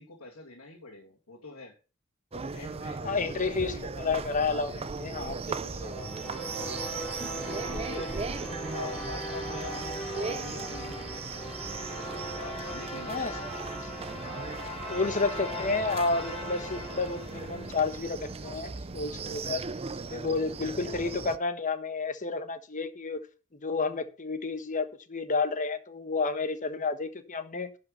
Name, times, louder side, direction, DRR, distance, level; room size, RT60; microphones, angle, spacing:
voice 1, 0.0-1.8 2.3-3.8 4.4-4.8 5.1-5.9 6.5-6.9 7.7-8.2 8.7-11.1 12.3-13.3, left 3 dB, 85° left, 2.5 m, -45 dB
sound 1, 2.3-21.4, right 4 dB, 30° right, 0.5 m, -38 dB
voice 2, 3.0-6.1 13.1-13.4 14.9-19.6 20.1-23.2 23.6-27.7, left 4 dB, 40° left, 1.2 m, -31 dB
sound 2, 5.8-18.2, equal, ahead, 6.0 m, -39 dB
11.5 x 5.5 x 5.4 m
head